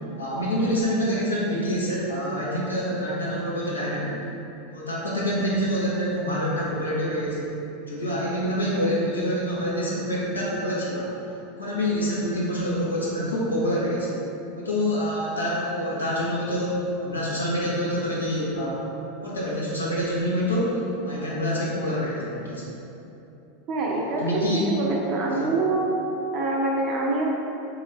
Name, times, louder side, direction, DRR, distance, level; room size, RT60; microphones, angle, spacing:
voice 1, 0.2-4.2 4.7-7.5 7.9-11.1 11.6-14.1 14.5-18.8 19.2-22.6 24.2-24.6 25.3-25.4, equal, 85° left, -7 dB, 0.9 m, -26 dB
voice 2, 23.7-24.4 24.8-25.9 26.3-27.2, right 2 dB, 40° right, -3 dB, 0.7 m, -25 dB
4.0 x 2.9 x 3.2 m, 3.0 s
figure-of-eight pair, 85°, 0 cm